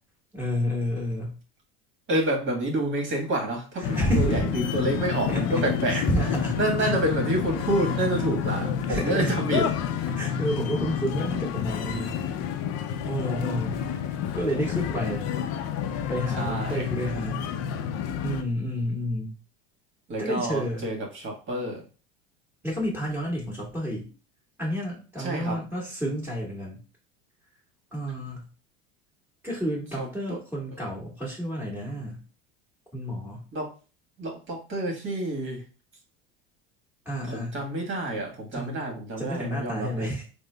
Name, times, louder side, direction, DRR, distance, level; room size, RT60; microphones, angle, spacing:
voice 1, 0.3-1.4 3.8-4.5 5.3-5.6 5.9-6.9 8.9-9.3 10.1-12.2 13.0-13.8 14.3-15.3 16.1-17.4 18.2-19.3 20.2-20.9 22.6-24.1 24.6-26.8 27.9-28.5 29.4-32.2 32.9-33.4 37.0-37.6 38.5-38.8 39.2-40.2, equal, 5° right, -5 dB, 1.6 m, -30 dB
voice 2, 2.1-6.0 6.6-9.7 10.0-10.1 12.0-12.3 12.6-12.7 16.3-16.9 20.1-21.8 25.2-25.6 30.0-30.4 33.5-33.7 34.2-35.6 37.3-40.1, right 1 dB, 35° right, 1 dB, 1.4 m, -28 dB
sound 1, 3.8-18.4, left 8 dB, 55° left, 0.5 m, -29 dB
3.7 x 2.1 x 3.2 m, 0.35 s
supercardioid pair, 90°, 32 cm